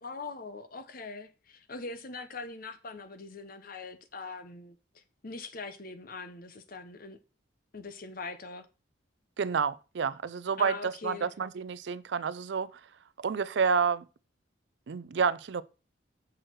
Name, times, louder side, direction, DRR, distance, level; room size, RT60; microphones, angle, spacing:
voice 1, 0.0-7.2 7.7-8.7 10.6-11.3, left 4 dB, 45° left, 0.8 m, -42 dB
voice 2, 9.4-12.7 13.2-14.0 14.9-15.6, right 6 dB, 60° right, 0.4 m, -29 dB
6.3 x 6.2 x 4.6 m
head